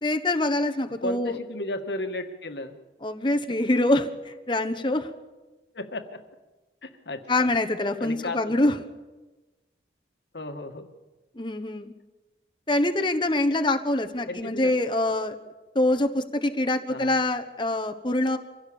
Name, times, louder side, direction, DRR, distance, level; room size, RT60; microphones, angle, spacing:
voice 1, 0.0-1.4 3.0-5.1 7.3-8.8 11.4-11.9 12.7-15.3 15.7-18.4, left 1 dB, 25° left, 7 dB, 1.2 m, -25 dB
voice 2, 1.0-2.7 5.7-6.2 6.8-7.5 8.0-8.5 10.3-10.9 14.3-14.8 16.9-17.1, left 1 dB, 75° left, 7 dB, 1.8 m, -34 dB
25.5 x 16.5 x 7.1 m, 1.2 s
head